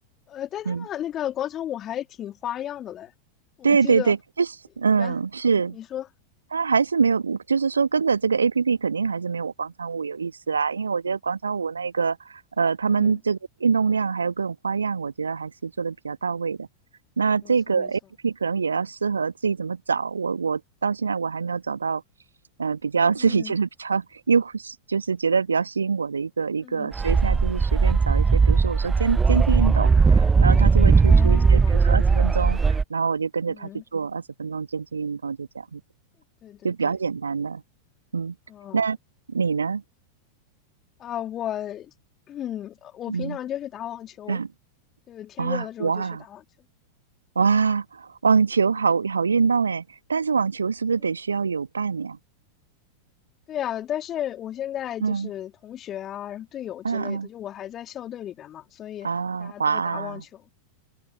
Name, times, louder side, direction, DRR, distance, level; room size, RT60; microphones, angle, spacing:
voice 1, 0.3-3.1 3.6-4.1 4.9-5.1 5.7-6.1 12.9-13.2 17.4-17.9 23.2-23.5 26.6-26.9 30.9-31.7 33.5-33.8 36.4-36.9 38.5-38.8 41.0-41.9 42.3-44.4 45.1-46.4 53.5-59.1 59.4-60.4, left 11 dB, 30° left, 3.0 m, -34 dB
voice 2, 3.6-4.5 4.8-5.8 6.5-16.7 17.2-22.0 22.6-35.8 36.6-37.6 38.1-38.3 38.7-39.0 39.3-39.8 43.1-43.4 44.3-44.5 45.4-46.2 47.3-52.2 55.0-55.3 56.8-57.3 59.0-60.2, right 5 dB, 75° right, 1.6 m, -25 dB
sound 1, 26.9-32.8, right 5 dB, 15° right, 0.3 m, -18 dB
figure-of-eight pair, 90°, 0 cm